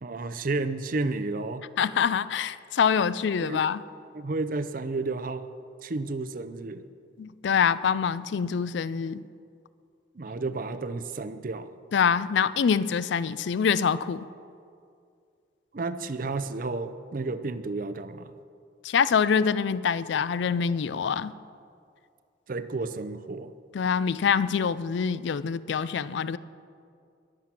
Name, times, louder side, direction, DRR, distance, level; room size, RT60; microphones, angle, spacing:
voice 1, 0.0-1.6 3.4-3.6 4.1-5.5 5.8-6.8 10.2-11.7 15.7-18.3 22.5-23.5, right 3 dB, 45° right, 12 dB, 0.5 m, -31 dB
voice 2, 1.8-3.8 7.2-9.2 11.9-14.3 18.8-21.3 23.7-26.4, left 6 dB, 70° left, 17 dB, 0.4 m, -25 dB
21.0 x 7.5 x 5.9 m, 2.3 s
head